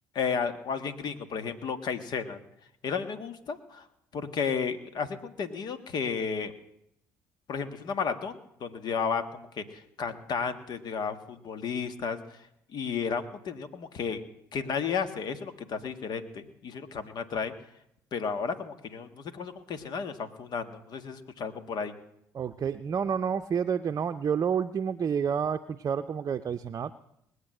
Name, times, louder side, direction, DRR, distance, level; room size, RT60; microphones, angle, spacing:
voice 1, 0.1-2.4 2.8-3.8 4.1-6.5 7.5-12.2 12.7-14.2 14.5-17.5 18.1-21.9, left 6 dB, 55° left, 9 dB, 1.6 m, -33 dB
voice 2, 22.3-26.9, right 7 dB, 40° right, 8 dB, 0.6 m, -29 dB
20.0 x 8.1 x 7.8 m, 0.76 s
hypercardioid pair, 55°, 8 cm